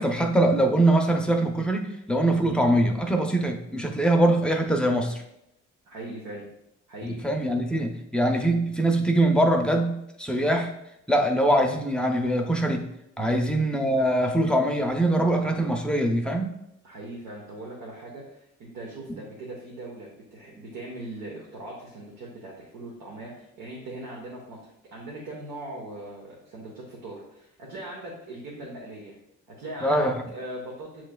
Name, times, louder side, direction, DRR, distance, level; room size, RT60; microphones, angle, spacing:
voice 1, 0.0-5.2 7.0-10.7 11.1-12.9 13.2-16.5 19.1-19.2 29.8-30.2, right 1 dB, 5° left, 3 dB, 0.6 m, -23 dB
voice 2, 5.8-6.4 6.9-7.2 13.2-13.4 16.8-24.6 24.9-29.2 29.6-31.0, right 1 dB, 85° right, -3 dB, 1.1 m, -40 dB
7.4 x 3.1 x 2.2 m, 0.81 s
cardioid pair, 90°, 30 cm